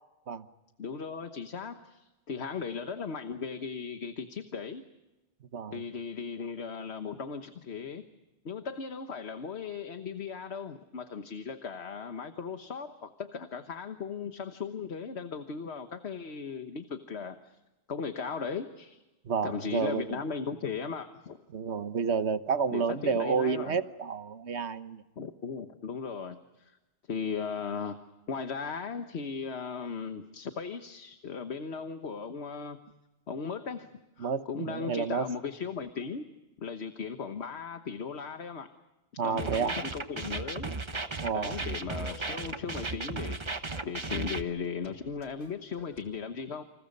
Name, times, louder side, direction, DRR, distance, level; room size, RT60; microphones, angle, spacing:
voice 1, 0.8-4.8 5.7-8.0 8.4-17.6 17.9-19.0 19.4-21.4 22.7-23.8 25.2-26.8 27.1-28.0 28.3-32.8 33.3-36.2 36.6-38.7 39.2-40.7 41.3-43.4 43.8-46.6, left 5 dB, 75° left, 8 dB, 1.5 m, -37 dB
voice 2, 19.2-20.2 21.5-25.0 34.2-35.2 39.2-39.7 41.2-41.5, right 6 dB, 80° right, 11 dB, 1.4 m, -30 dB
sound 1, 39.4-44.4, right 3 dB, 25° right, 1.1 m, -35 dB
sound 2, 40.9-46.1, left 2 dB, 40° left, 3.2 m, -53 dB
29.5 x 28.0 x 5.3 m, 1.1 s
omnidirectional pair, 1.1 m